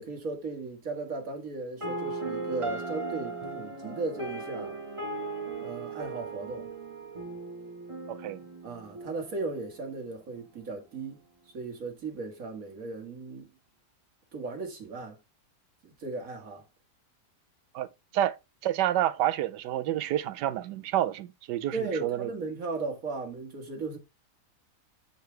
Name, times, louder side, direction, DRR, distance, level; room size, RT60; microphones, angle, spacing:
voice 1, 0.0-4.8 5.6-6.7 8.6-11.2 11.5-13.5 14.3-15.2 15.8-16.6 21.7-24.0, right 3 dB, 55° right, 1.9 m, -36 dB
sound 1, 1.8-9.8, right 3 dB, 20° right, 1.3 m, -37 dB
voice 2, 8.1-8.4 17.7-17.9 18.1-18.3 18.6-22.3, right 12 dB, 85° right, 1.3 m, -29 dB
8.0 x 4.5 x 3.2 m
omnidirectional pair, 1.8 m